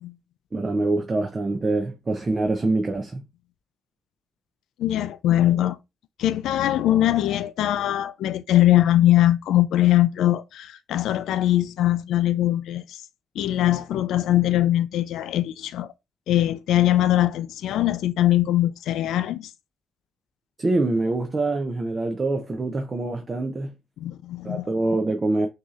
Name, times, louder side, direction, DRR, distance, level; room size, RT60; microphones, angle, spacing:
voice 1, 0.5-3.2 20.6-23.7 24.4-25.5, right 2 dB, 25° right, 0.5 m, -25 dB
voice 2, 4.8-5.8 6.2-13.0 13.4-15.9 16.3-19.5 24.0-24.7, left 13 dB, 80° left, 0.3 m, -21 dB
6.0 x 2.8 x 2.4 m
cardioid pair, 130°, 0 cm